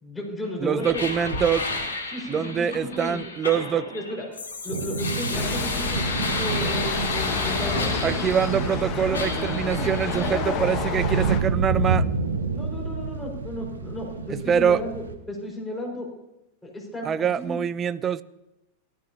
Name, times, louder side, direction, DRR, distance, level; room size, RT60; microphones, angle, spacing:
voice 1, 0.0-1.0 2.1-3.2 3.9-4.3 4.6-8.2 9.0-9.9 10.1-10.6 12.5-16.1 16.6-17.6, left 1 dB, 5° left, -3 dB, 4.8 m, -34 dB
voice 2, 0.6-1.7 2.3-3.9 8.0-12.0 14.5-14.8 17.0-18.2, right 8 dB, 25° right, 18 dB, 0.5 m, -24 dB
sound 1, 0.8-8.8 9.1-10.3, left 3 dB, 70° left, 2.7 m, -32 dB
sound 2, 4.7-15.1, right 4 dB, 70° right, 1.1 m, -29 dB
sound 3, 5.3-11.4, left 6 dB, 35° left, 1.5 m, -30 dB
17.5 x 13.0 x 2.8 m, 0.92 s
figure-of-eight pair, 90°, 0 cm